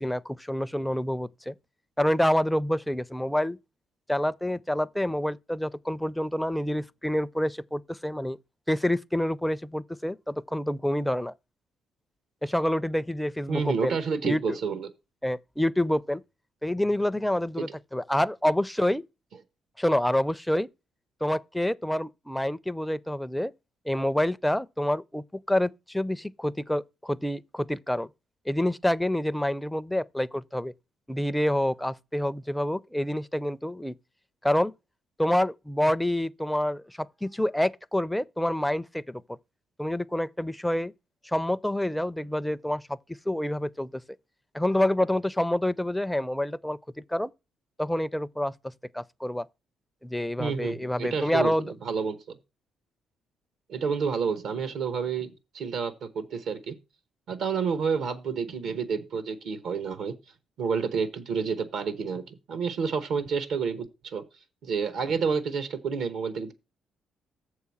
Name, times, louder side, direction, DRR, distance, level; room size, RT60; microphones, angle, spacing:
voice 1, 0.0-1.5 2.0-3.6 4.1-8.4 8.7-11.3 12.4-14.0 14.2-14.6 15.2-16.2 16.6-19.0 19.8-20.7 21.2-23.5 23.9-28.1 28.5-30.7 31.1-33.9 34.4-34.7 35.2-39.2 39.8-40.9 41.2-43.0 43.3-44.0 44.5-46.8 47.1-47.3 47.8-49.5 50.0-51.7, left 1 dB, 5° left, 0.4 m, -27 dB
voice 2, 13.5-14.9 17.6-17.7 50.4-52.2 53.7-56.7 57.3-60.2 60.6-64.2 64.6-66.5, right 6 dB, 75° right, 0.9 m, -29 dB
7.0 x 4.8 x 7.0 m
cardioid pair, 90°, 0 cm